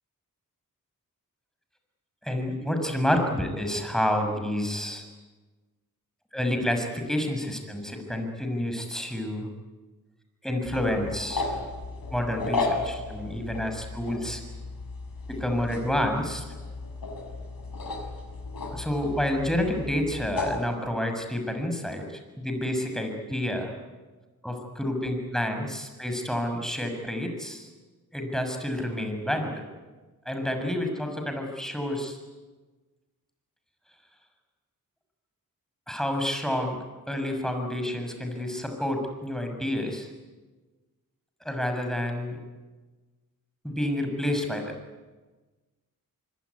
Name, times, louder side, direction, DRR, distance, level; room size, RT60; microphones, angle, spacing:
voice 1, 2.2-5.0 6.3-9.5 10.4-11.5 12.1-14.4 15.3-16.4 18.7-22.1 22.4-23.7 24.4-27.7 28.1-29.6 30.2-32.2 35.9-36.8 37.1-40.1 41.4-42.4 43.6-44.7, left 1 dB, ahead, 5 dB, 6.6 m, -29 dB
sound 1, 10.6-20.6, left 3 dB, 75° left, 6.2 m, -34 dB
24.5 x 23.0 x 9.7 m, 1.3 s
wide cardioid pair, 65°, 36 cm